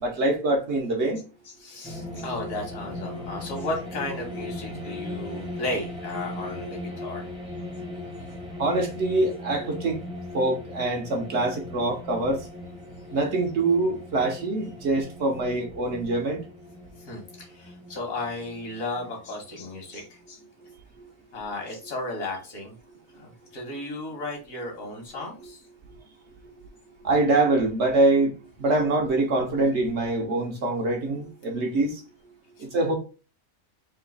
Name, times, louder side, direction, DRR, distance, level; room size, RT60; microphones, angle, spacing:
voice 1, 0.0-1.2 8.6-10.0 10.3-12.4 13.1-16.4 21.0-21.1 25.4-25.5 27.0-28.3 28.6-32.0 32.6-33.0, right 2 dB, 60° right, 1.0 m, -24 dB
voice 2, 1.6-7.3 17.0-20.4 21.3-22.8 23.1-25.6, left 2 dB, 75° left, 1.8 m, -34 dB
sound 1, 1.8-19.5, left 2 dB, 5° right, 0.6 m, -38 dB
3.9 x 2.7 x 3.8 m
omnidirectional pair, 1.4 m